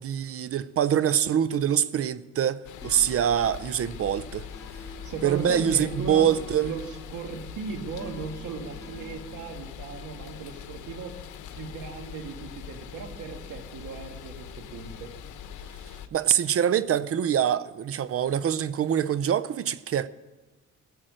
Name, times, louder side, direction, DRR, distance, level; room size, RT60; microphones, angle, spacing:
voice 1, 0.0-4.4 5.2-6.7 16.1-20.1, right 9 dB, 50° right, 0.6 m, -24 dB
sound 1, 2.6-16.1, left 8 dB, 85° left, 1.1 m, -42 dB
sound 2, 2.8-9.7, left 2 dB, 10° left, 1.8 m, -49 dB
voice 2, 5.0-6.3 6.6-11.2 11.5-15.1, right 5 dB, 80° right, 1.9 m, -37 dB
16.5 x 7.6 x 6.4 m
cardioid pair, 90°, 30 cm